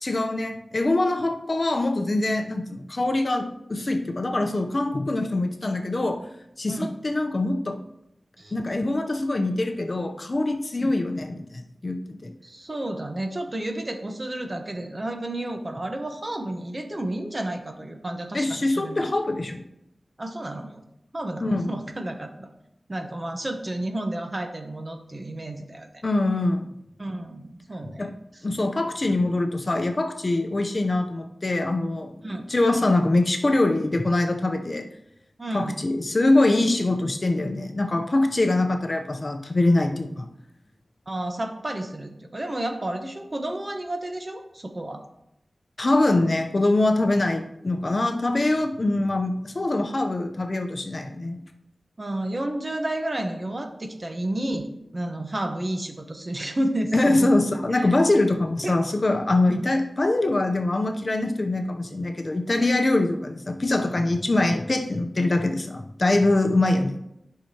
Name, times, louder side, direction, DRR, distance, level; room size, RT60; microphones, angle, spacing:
voice 1, 0.0-6.2 6.6-7.8 8.5-12.3 18.3-19.6 21.4-21.8 26.0-26.7 27.8-28.1 28.4-34.9 35.5-40.3 45.8-51.4 56.9-67.0, left 2 dB, 45° left, 5 dB, 0.7 m, -23 dB
voice 2, 12.4-19.0 20.2-20.8 21.1-22.5 22.9-25.9 27.0-28.4 32.2-32.5 35.4-35.8 41.1-45.0 52.0-54.7 54.9-57.3 57.8-58.0 58.6-58.7 59.5-59.7, right 1 dB, 35° right, 4 dB, 1.1 m, -31 dB
11.5 x 5.8 x 2.9 m, 0.81 s
wide cardioid pair, 80°, 0 cm